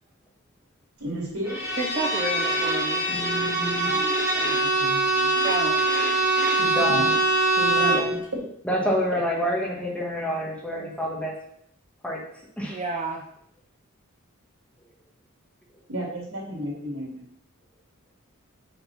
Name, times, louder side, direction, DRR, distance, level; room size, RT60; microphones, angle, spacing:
voice 1, 1.0-1.6 3.8-5.3 6.9-7.0 9.1-9.2 15.9-17.2, equal, 90° right, -2 dB, 2.9 m, -33 dB
Bowed string instrument, 1.5-8.1, right 2 dB, 10° right, 2.2 m, -23 dB
voice 2, 1.8-3.0 5.4-5.8 7.8-8.0 12.7-13.2, right 2 dB, 30° right, 2 dB, 0.6 m, -30 dB
voice 3, 3.1-3.9 6.6-7.1 7.6-8.2 8.6-11.3 12.0-12.2 12.6-12.8, equal, 5° left, -2 dB, 1.4 m, -28 dB
5.8 x 4.1 x 5.8 m, 0.69 s
head